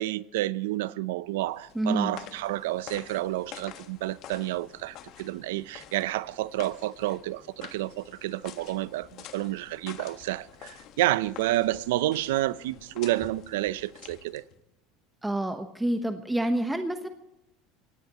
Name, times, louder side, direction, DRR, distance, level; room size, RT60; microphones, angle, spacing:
voice 1, 0.0-14.4, right 16 dB, 85° right, 0.6 m, -30 dB
sound 1, 1.3-14.6, left 10 dB, 55° left, 1.5 m, -48 dB
voice 2, 1.7-2.2 15.2-17.1, right 1 dB, 5° right, 1.0 m, -28 dB
23.5 x 17.5 x 3.0 m
supercardioid pair, 115°, 0 cm